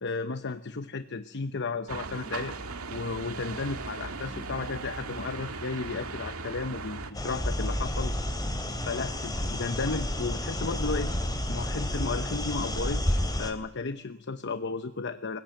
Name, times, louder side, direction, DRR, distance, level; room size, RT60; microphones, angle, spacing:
voice 1, 0.0-2.5 2.9-8.1 8.8-11.1 11.5-15.4, left 4 dB, 55° left, 10 dB, 0.9 m, -34 dB
sound 1, 1.9-7.1, right 3 dB, 80° right, 2.1 m, -38 dB
sound 2, 7.1-13.5, left 1 dB, 20° left, 3.2 m, -30 dB
26.5 x 17.5 x 9.1 m, 0.80 s
head